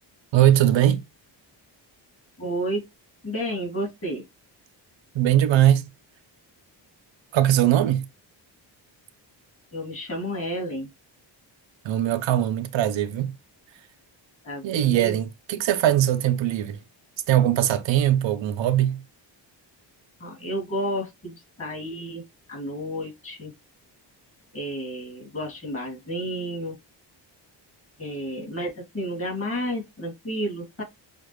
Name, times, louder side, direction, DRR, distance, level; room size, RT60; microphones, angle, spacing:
voice 1, 0.3-1.0 5.1-5.9 7.3-8.0 11.8-13.3 14.6-16.8 17.3-19.0, right 12 dB, 75° right, 0.6 m, -21 dB
voice 2, 2.4-2.8 3.2-4.2 9.7-10.9 14.4-15.2 20.2-22.2 22.5-23.5 24.5-26.8 28.0-30.8, equal, 30° left, 2.6 m, -31 dB
6.4 x 2.4 x 3.1 m
wide cardioid pair, 160°, 45 cm